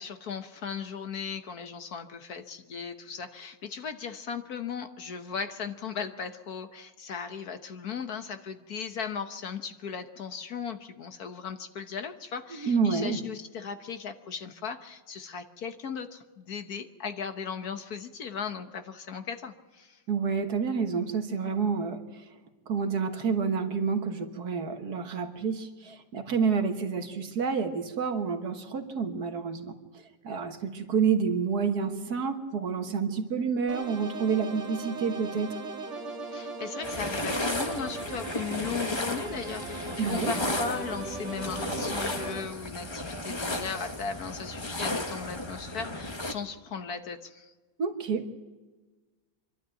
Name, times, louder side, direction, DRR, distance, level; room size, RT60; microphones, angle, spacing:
voice 1, 0.0-20.0 36.3-47.5, left 6 dB, 60° left, 8 dB, 1.4 m, -37 dB
voice 2, 12.5-13.2 20.1-22.0 22.7-29.7 30.2-35.5 40.0-40.3 47.8-48.4, right 5 dB, 60° right, 6 dB, 1.9 m, -29 dB
sound 1, 33.7-42.4, right 3 dB, 40° right, 2.1 m, -38 dB
sound 2, 36.8-46.3, left 2 dB, 20° left, 1.0 m, -34 dB
25.0 x 12.0 x 9.0 m, 1.3 s
omnidirectional pair, 2.0 m